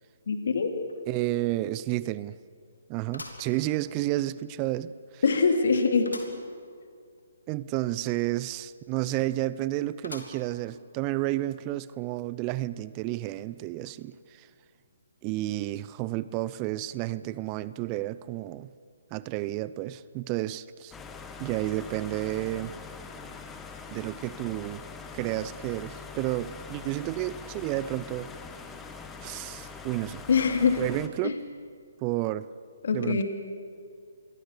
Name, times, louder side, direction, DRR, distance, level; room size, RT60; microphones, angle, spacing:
voice 1, 0.3-0.7 5.2-6.1 30.3-30.8 31.2-31.3 32.8-33.2, left 5 dB, 60° left, 5 dB, 2.9 m, -23 dB
sound 1, 0.9-1.0 1.4-1.5 3.1-4.2 4.7-4.8 6.0-6.5 6.9-7.0 7.2-7.3 10.0-10.7 11.2-11.3 12.3-12.4, left 2 dB, 85° left, 3.2 m, -44 dB
voice 2, 1.1-2.3 2.9-5.2 7.5-14.5 15.2-18.7 19.1-21.0 21.4-22.7 23.9-24.8 25.1-28.3 29.2-30.2 30.8-31.4 32.0-32.5 32.9-33.2, right 16 dB, 25° right, 17 dB, 0.6 m, -31 dB
sound 2, 20.9-31.1, left 5 dB, 10° left, 1.5 m, -43 dB
26.5 x 22.0 x 6.8 m, 2.2 s
figure-of-eight pair, 135°, 0 cm